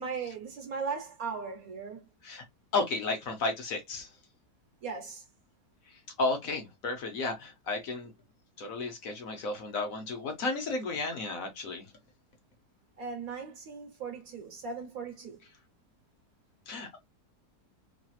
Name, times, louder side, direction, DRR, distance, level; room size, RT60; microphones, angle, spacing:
voice 1, 0.0-2.0 4.8-5.3 13.0-15.4, right 5 dB, 60° right, 1.4 m, -38 dB
voice 2, 2.7-4.1 5.9-8.1 8.6-11.9 16.7-17.0, left 3 dB, 60° left, 1.1 m, -33 dB
3.2 x 2.8 x 2.2 m
omnidirectional pair, 1.8 m